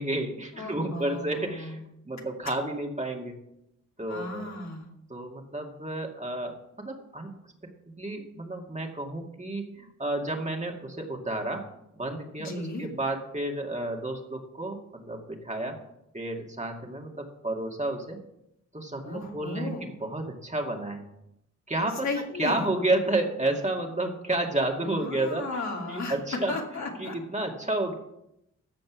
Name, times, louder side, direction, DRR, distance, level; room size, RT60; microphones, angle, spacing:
voice 1, 0.0-3.4 4.0-4.5 5.1-7.3 8.0-11.6 11.9-15.8 16.1-18.2 18.7-21.0 21.7-22.1 22.4-25.6 25.9-26.5 27.0-27.9, right 2 dB, 25° right, 2 dB, 2.2 m, -31 dB
voice 2, 0.6-1.8 4.1-4.9 12.4-12.8 19.0-19.9 22.0-22.7 24.9-26.2 26.5-27.1, left 2 dB, 65° left, 0 dB, 2.6 m, -35 dB
14.5 x 5.2 x 6.2 m, 0.81 s
cardioid pair, 60°, 30 cm